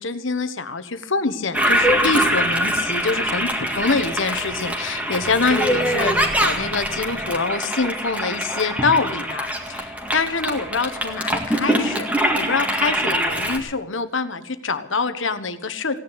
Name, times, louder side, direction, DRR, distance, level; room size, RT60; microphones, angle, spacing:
voice 1, 0.0-12.1 12.3-16.0, left 4 dB, 75° left, 10 dB, 1.3 m, -25 dB
Toilet flush, 1.5-13.6, equal, 5° right, 2.0 m, -23 dB
16.5 x 10.0 x 8.1 m, 0.75 s
head